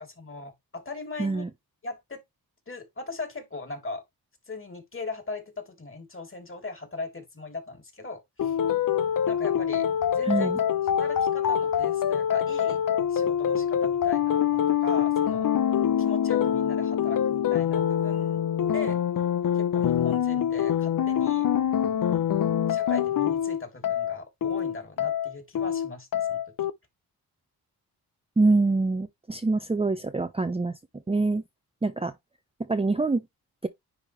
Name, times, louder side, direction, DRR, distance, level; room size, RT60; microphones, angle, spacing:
voice 1, 0.0-1.4 1.8-2.2 2.7-4.0 4.5-8.6 9.3-9.9 10.1-10.5 11.0-12.8 13.1-15.5 16.0-18.4 18.7-19.0 19.5-21.5 22.7-26.7, left 3 dB, 35° left, 3.4 m, -39 dB
sound 1, 8.4-26.7, left 9 dB, 55° left, 0.7 m, -25 dB
voice 2, 10.2-10.6 28.4-30.7 31.1-31.4 31.8-32.1 32.6-33.2 33.6-33.7, right 3 dB, 15° right, 0.7 m, -25 dB
10.0 x 3.7 x 3.2 m
cardioid pair, 60°, 38 cm